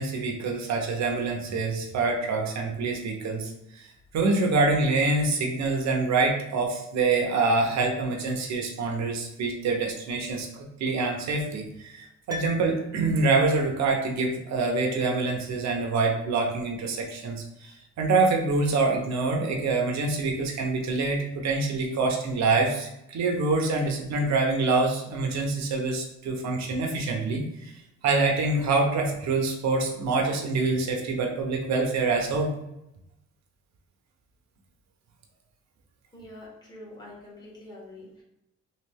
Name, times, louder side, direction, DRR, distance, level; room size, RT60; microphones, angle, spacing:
voice 1, 0.0-3.9 4.1-27.7 28.0-32.5, right 3 dB, 65° right, 2 dB, 0.8 m, -26 dB
Piano, 12.3-13.5 13.8-13.9, left 3 dB, 15° right, 0.4 m, -40 dB
voice 2, 36.1-38.2, left 1 dB, 15° left, -5 dB, 1.4 m, -45 dB
3.1 x 2.4 x 3.5 m, 0.84 s
cardioid pair, 90°, 30 cm